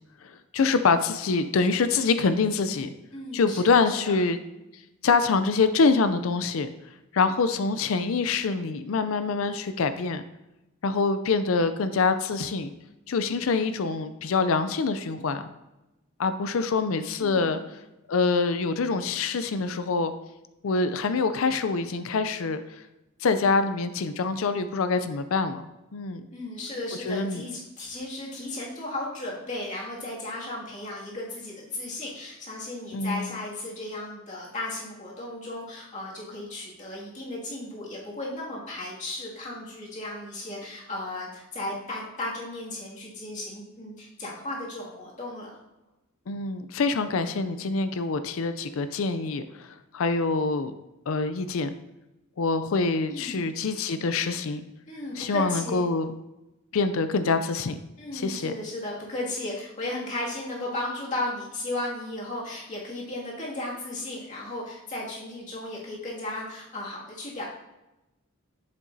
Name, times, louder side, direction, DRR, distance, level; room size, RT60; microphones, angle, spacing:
voice 1, 0.2-2.9 3.3-4.4 5.0-6.7 7.1-10.2 10.8-12.7 13.1-15.4 16.2-17.6 18.1-20.1 20.6-22.6 23.2-25.6 25.9-26.3 27.0-27.4 32.9-33.4 46.3-49.7 49.9-50.7 51.1-51.7 52.4-54.6 55.2-56.1 56.7-57.8 58.1-58.5, left 4 dB, 70° left, 10 dB, 0.5 m, -25 dB
voice 2, 3.1-4.2 17.2-17.6 26.3-45.6 53.1-53.5 54.9-55.8 58.0-67.4, left 1 dB, 35° left, -5 dB, 2.3 m, -35 dB
7.5 x 7.4 x 2.7 m, 0.97 s
head